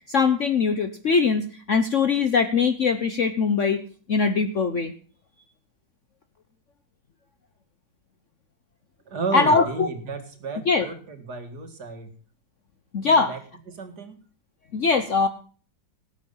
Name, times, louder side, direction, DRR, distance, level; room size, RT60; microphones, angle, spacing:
voice 1, 0.1-3.8 4.1-4.9 9.3-9.9 10.7-10.9 12.9-13.3 14.7-15.3, left 5 dB, 50° left, 9 dB, 1.1 m, -21 dB
voice 2, 9.1-12.1 13.0-13.4 13.7-14.2, right 4 dB, 60° right, 7 dB, 2.6 m, -33 dB
18.0 x 8.4 x 5.4 m, 0.41 s
omnidirectional pair, 1.9 m